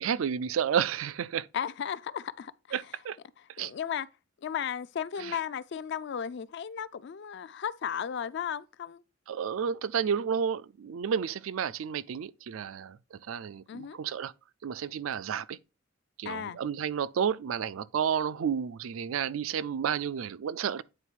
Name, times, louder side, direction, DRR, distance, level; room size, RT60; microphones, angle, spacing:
voice 1, 0.0-1.5 2.7-3.2 3.6-3.7 5.2-5.4 9.3-14.3 14.6-15.6 16.2-20.8, right 7 dB, 85° right, 0.4 m, -31 dB
voice 2, 1.5-2.5 3.6-4.1 4.4-9.0 13.7-14.0 16.2-16.6, left 8 dB, 60° left, 0.4 m, -35 dB
8.8 x 3.9 x 4.5 m
head